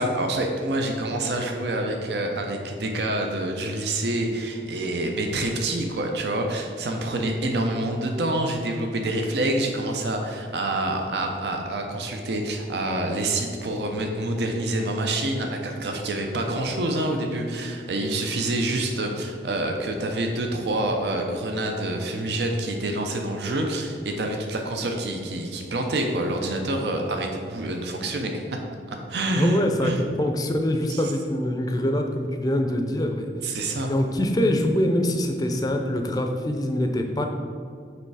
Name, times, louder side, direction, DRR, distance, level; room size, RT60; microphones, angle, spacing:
voice 1, 0.0-28.6 28.9-30.0 30.9-31.1 33.4-33.9, right 1 dB, 75° right, 3 dB, 0.6 m, -27 dB
voice 2, 29.3-33.3 33.9-37.3, left 1 dB, 20° left, 4 dB, 0.4 m, -24 dB
6.8 x 3.2 x 4.7 m, 2.3 s
head